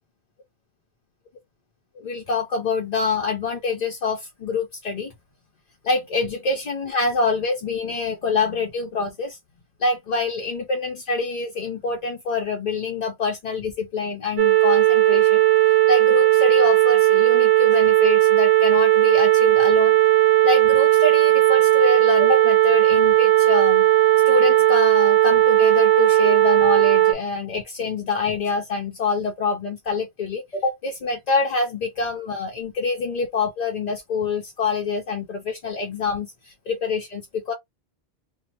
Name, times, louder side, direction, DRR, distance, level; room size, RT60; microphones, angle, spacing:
voice 1, 2.0-5.1 5.8-9.4 9.8-15.4 15.9-20.0 20.4-23.9 24.2-37.5, left 4 dB, 50° left, 0.5 m, -26 dB
sound 1, 14.4-27.1, right 14 dB, 85° right, 0.9 m, -16 dB
2.8 x 2.0 x 2.9 m
omnidirectional pair, 1.2 m